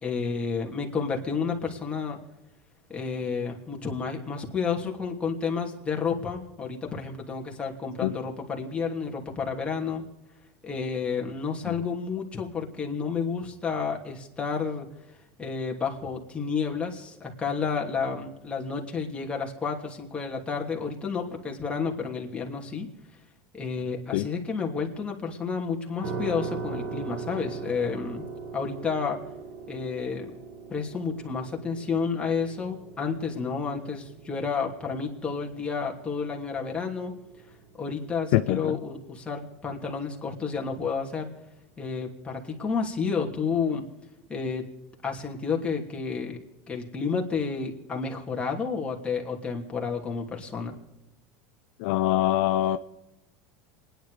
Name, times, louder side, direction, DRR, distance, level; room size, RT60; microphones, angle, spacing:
voice 1, 0.0-2.2 2.9-10.0 10.6-14.9 15.4-22.9 23.5-28.2 28.5-29.2 29.7-30.3 30.7-37.1 37.8-41.3 41.8-43.8 44.3-44.7 45.0-50.8, left 5 dB, 15° left, 2.8 m, -31 dB
sound 1, 26.0-38.9, right 4 dB, 45° right, 2.2 m, -40 dB
voice 2, 38.3-38.7 51.8-52.8, left 14 dB, 70° left, 0.6 m, -24 dB
27.5 x 10.5 x 5.0 m
supercardioid pair, 125°, 7 cm